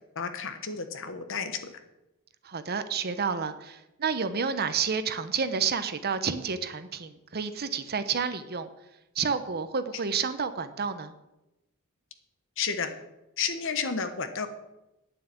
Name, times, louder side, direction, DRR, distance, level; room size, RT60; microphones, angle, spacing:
voice 1, 0.1-1.7 12.6-12.9 13.4-14.5, left 5 dB, 60° left, 8 dB, 1.3 m, -31 dB
voice 2, 2.4-8.7 9.2-11.1, right 6 dB, 45° right, 11 dB, 0.8 m, -30 dB
9.0 x 7.5 x 8.5 m, 0.94 s
head